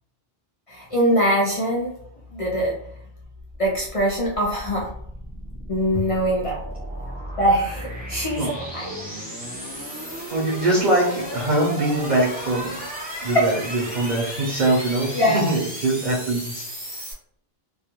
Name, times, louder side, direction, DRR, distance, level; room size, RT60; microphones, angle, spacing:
voice 1, 0.7-1.9 2.3-2.8 3.6-4.9 5.7-6.7 7.4-9.0 15.1-15.4, equal, 55° left, -3 dB, 0.4 m, -22 dB
sound 1, 3.6-17.1, equal, 10° right, 0.5 m, -34 dB
voice 2, 10.3-12.8 13.2-16.6, right 2 dB, 55° right, -4 dB, 0.6 m, -23 dB
2.3 x 2.1 x 2.9 m, 0.67 s
omnidirectional pair, 1.1 m